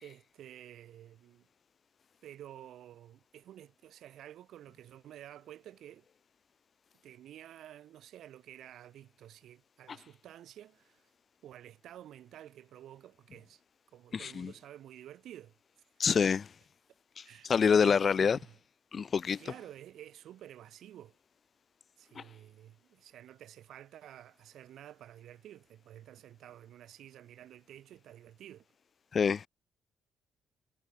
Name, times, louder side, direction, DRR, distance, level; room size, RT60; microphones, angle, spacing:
voice 1, 0.0-1.5 2.2-6.1 7.0-11.0 11.4-13.6 13.9-15.5 17.2-18.6 19.3-21.2 22.0-28.7, right 12 dB, 75° right, 2.2 m, -51 dB
voice 2, 14.1-14.5 16.0-16.5 17.2-18.4 18.9-19.4 22.2-22.3 29.1-29.5, left 6 dB, 45° left, 0.5 m, -27 dB
cardioid pair, 90°, 0 cm